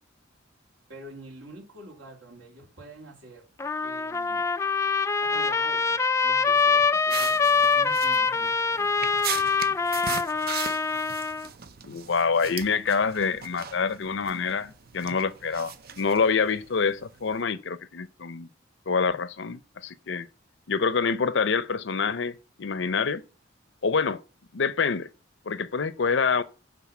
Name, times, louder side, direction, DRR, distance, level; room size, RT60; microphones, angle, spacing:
voice 1, 0.9-3.5 3.8-4.4 5.2-8.9, right 2 dB, 75° right, 3.9 m, -46 dB
Trumpet, 3.6-11.5, left 4 dB, 15° left, 0.3 m, -24 dB
sound 1, 7.1-17.4, right 8 dB, 55° right, 0.7 m, -39 dB
voice 2, 11.8-18.5 18.9-20.3 20.7-23.2 23.8-24.2 24.5-25.1 25.5-26.4, left 5 dB, 65° left, 0.6 m, -26 dB
9.6 x 3.9 x 7.2 m
head